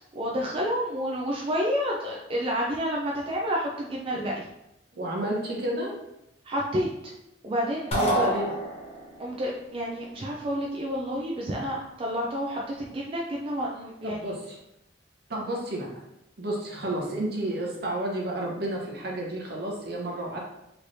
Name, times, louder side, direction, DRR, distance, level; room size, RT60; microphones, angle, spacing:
voice 1, 0.2-4.3 6.5-6.9 7.4-8.4 9.2-14.2, equal, 30° right, -2 dB, 0.3 m, -29 dB
voice 2, 4.9-6.0 7.9-8.5 14.0-14.6 15.3-15.9 16.4-20.4, right 1 dB, 60° right, -1 dB, 0.8 m, -31 dB
sound 1, 7.9-9.2, equal, 35° left, 0.7 m, -27 dB
3.2 x 3.0 x 2.6 m, 0.86 s
head